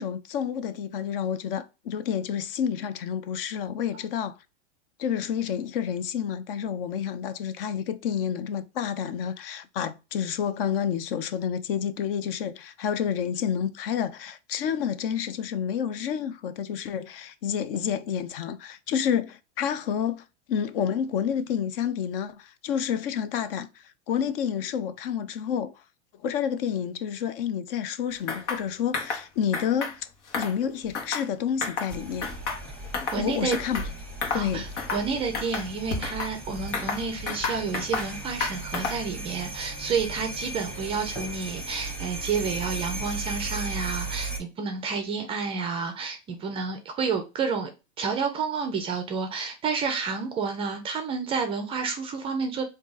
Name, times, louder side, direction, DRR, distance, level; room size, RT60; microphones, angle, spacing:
voice 1, 0.0-4.4 5.0-23.7 24.1-25.7 26.2-30.1 30.3-32.3 33.2-33.8 34.3-34.7, left 8 dB, 55° left, 0.6 m, -29 dB
sound 1, 28.3-28.6 28.9-29.2 29.5-29.9 30.3-31.3 31.6-31.9 32.2-33.2 33.5-33.9 34.2-34.5 34.8-35.1 35.3-36.3 36.7-38.1 38.4-39.1, left 4 dB, 90° left, 1.4 m, -31 dB
sound 2, 31.9-44.4, right 2 dB, 5° left, 1.0 m, -36 dB
voice 2, 33.1-33.6 34.3-47.7 48.0-52.6, right 5 dB, 15° right, 0.4 m, -30 dB
3.7 x 2.7 x 3.8 m
supercardioid pair, 145°, 34 cm